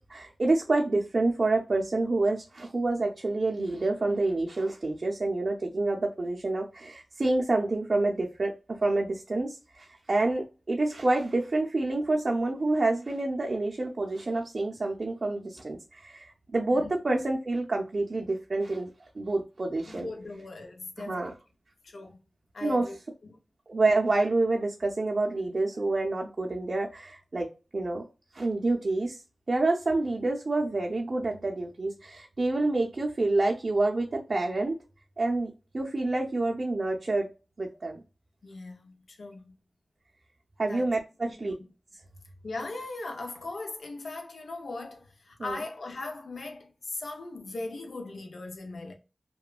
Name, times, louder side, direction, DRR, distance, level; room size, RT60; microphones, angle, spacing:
voice 1, 0.1-8.5 8.8-18.9 19.1-20.1 21.0-21.3 22.6-22.9 23.7-27.5 27.7-28.0 28.3-29.2 29.5-34.8 35.2-37.3 37.6-38.0 40.6-41.5 45.4-45.6, right 2 dB, 55° right, 0.5 m, -28 dB
voice 2, 19.9-21.4 21.8-22.2 22.5-23.0 23.2-23.4 38.4-39.6 40.6-40.9 41.2-41.5 42.4-48.9, left 2 dB, 85° left, 0.5 m, -39 dB
2.9 x 2.1 x 2.3 m
wide cardioid pair, 60°, 0 cm